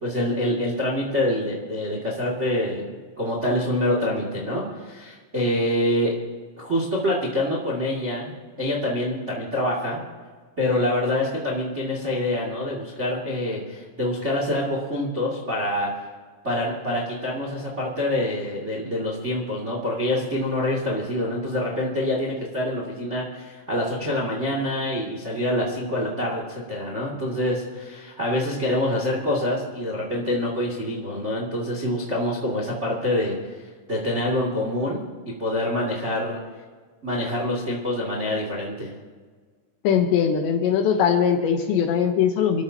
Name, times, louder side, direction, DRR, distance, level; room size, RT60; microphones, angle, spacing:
voice 1, 0.0-6.1 6.6-10.0 10.6-16.0 16.4-33.3 33.9-35.1 35.4-36.4 37.0-38.9, left 1 dB, 35° right, -2 dB, 1.0 m, -26 dB
voice 2, 39.8-42.6, left 7 dB, 75° left, 5 dB, 2.9 m, -21 dB
28.5 x 13.5 x 2.9 m, 1.5 s
omnidirectional pair, 5.8 m